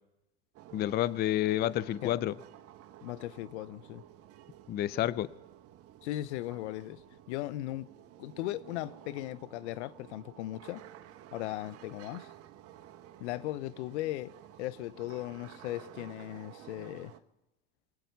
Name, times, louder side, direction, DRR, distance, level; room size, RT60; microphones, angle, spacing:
sound 1, 0.5-17.2, right 12 dB, 45° right, 1.2 m, -53 dB
voice 1, 0.7-2.3 4.7-5.3, left 13 dB, 30° left, 0.4 m, -29 dB
voice 2, 3.0-4.0 6.0-7.0 7.3-7.9 8.2-10.8 11.3-12.3 13.2-14.3 14.6-17.1, left 16 dB, 80° left, 0.7 m, -37 dB
24.5 x 9.2 x 5.6 m
supercardioid pair, 115°, 34 cm